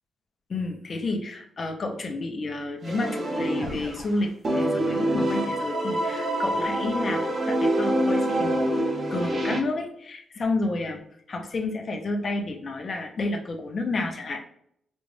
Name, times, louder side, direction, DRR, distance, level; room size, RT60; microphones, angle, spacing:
voice 1, 0.5-11.0 11.3-14.4, left 2 dB, 35° left, 3 dB, 0.7 m, -30 dB
sound 1, 2.8-4.1 4.4-9.6, right 1 dB, 30° right, 0.8 m, -26 dB
5.2 x 2.4 x 3.2 m, 0.70 s
wide cardioid pair, 175°, 0 cm